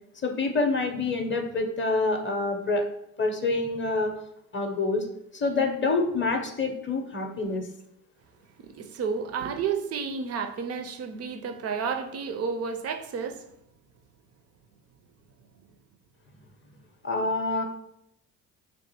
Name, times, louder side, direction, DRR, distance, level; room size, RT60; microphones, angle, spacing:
voice 1, 0.2-2.9 3.2-4.1 4.5-5.1 5.3-7.6 17.0-17.6, left 3 dB, 30° left, 3 dB, 0.6 m, -26 dB
voice 2, 8.6-13.4, right 6 dB, 40° right, 8 dB, 0.4 m, -31 dB
3.4 x 2.5 x 2.8 m, 0.76 s
hypercardioid pair, 55°, 43 cm